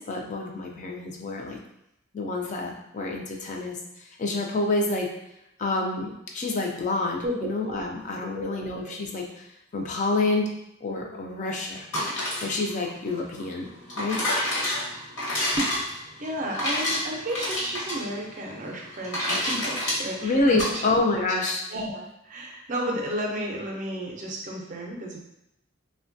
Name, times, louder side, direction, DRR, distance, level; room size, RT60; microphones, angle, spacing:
voice 1, 0.0-1.6 2.1-3.8 4.2-5.1 5.6-9.3 9.7-10.5 10.8-11.8 12.4-13.7 14.0-14.2 20.2-21.6, left 2 dB, 35° left, 1 dB, 0.3 m, -27 dB
voice 2, 7.2-7.9 8.3-9.1 15.5-15.8 16.2-20.8 21.2-25.2, right 1 dB, 40° right, 0 dB, 0.5 m, -33 dB
sound 1, 11.8-20.7, left 1 dB, 60° left, 0.9 m, -29 dB
3.1 x 2.1 x 2.6 m, 0.82 s
head